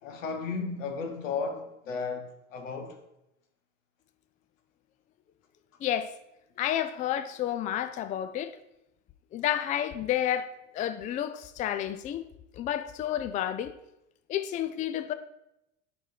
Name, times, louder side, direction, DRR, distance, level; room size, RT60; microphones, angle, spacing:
voice 1, 0.0-3.0, left 4 dB, 85° left, 1.1 m, -34 dB
voice 2, 5.8-6.1 6.6-8.5 9.3-12.2 12.5-13.7 14.3-15.1, left 11 dB, 20° left, 0.3 m, -30 dB
8.1 x 4.3 x 4.0 m
hypercardioid pair, 90°, 38 cm